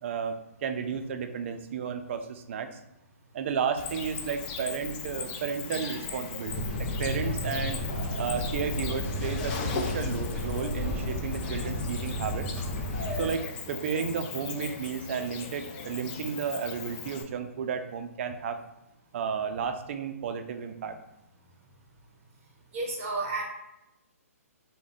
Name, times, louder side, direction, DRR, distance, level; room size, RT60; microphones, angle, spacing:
voice 1, 0.0-2.8 3.3-7.8 8.2-12.5 13.1-18.6 19.1-21.0, right 6 dB, 50° right, 7 dB, 0.4 m, -33 dB
Cricket, 3.8-17.2, left 5 dB, 35° left, 0.4 m, -39 dB
sound 1, 6.5-13.3, left 1 dB, 10° right, 1.1 m, -32 dB
voice 2, 22.7-23.4, right 3 dB, 30° right, -2 dB, 0.8 m, -31 dB
3.4 x 2.1 x 4.0 m, 0.88 s
hypercardioid pair, 135°, 8 cm